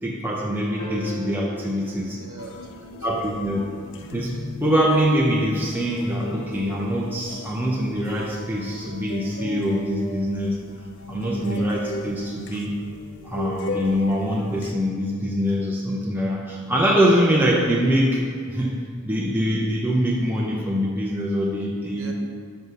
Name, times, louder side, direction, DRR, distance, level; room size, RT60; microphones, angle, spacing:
voice 1, 0.0-2.2 3.0-3.6 4.1-10.6 11.1-12.7 13.2-18.8 19.0-22.1, equal, 10° right, -4 dB, 0.6 m, -23 dB
sound 1, 0.8-3.3 5.5-5.6, left 1 dB, 90° left, 2.0 m, -39 dB
voice 2, 2.1-3.5 21.9-22.1, right 2 dB, 65° right, 2 dB, 1.0 m, -43 dB
sound 2, 2.4-14.7, left 2 dB, 60° left, 0.5 m, -36 dB
6.3 x 5.3 x 5.5 m, 2.2 s
head